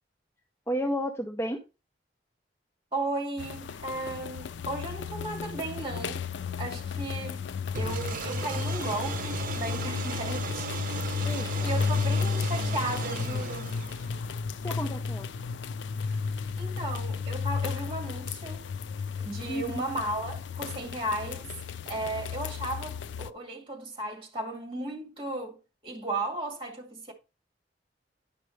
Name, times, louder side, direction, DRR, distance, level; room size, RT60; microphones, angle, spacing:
voice 1, 0.7-1.6 11.2-11.7 14.6-15.3 19.5-19.8, equal, 15° left, 0.7 m, -32 dB
voice 2, 2.9-6.3 6.6-7.4 7.7-10.7 11.1-13.8 16.1-16.2 16.6-18.7 19.2-21.5 21.9-25.6 25.8-27.1, right 2 dB, 30° right, 2.2 m, -35 dB
sound 1, 3.4-23.3, left 5 dB, 80° left, 0.4 m, -33 dB
sound 2, 7.8-14.3, right 4 dB, 50° right, 0.8 m, -36 dB
10.0 x 5.3 x 3.2 m
head